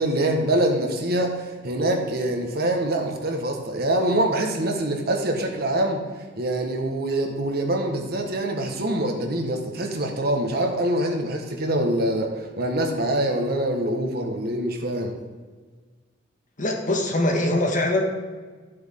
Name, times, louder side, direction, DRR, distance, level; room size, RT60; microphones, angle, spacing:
voice 1, 0.0-6.0 6.4-15.2, right 1 dB, 55° right, 2 dB, 1.6 m, -24 dB
voice 2, 16.6-18.0, left 1 dB, 45° left, 2 dB, 1.7 m, -22 dB
13.5 x 7.9 x 3.9 m, 1.4 s
head